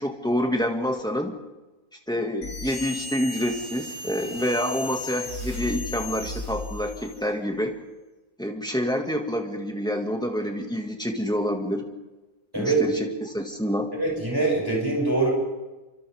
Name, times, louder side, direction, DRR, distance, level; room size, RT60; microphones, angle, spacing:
voice 1, 0.0-1.3 2.1-7.7 8.4-11.9 12.6-13.9, equal, 5° left, 2 dB, 2.2 m, -27 dB
sound 1, 2.4-7.3, left 3 dB, 80° left, 6.0 m, -35 dB
voice 2, 12.5-13.0 14.0-15.3, right 3 dB, 15° right, -3 dB, 7.1 m, -23 dB
28.0 x 25.5 x 3.7 m, 1.1 s
omnidirectional pair, 1.6 m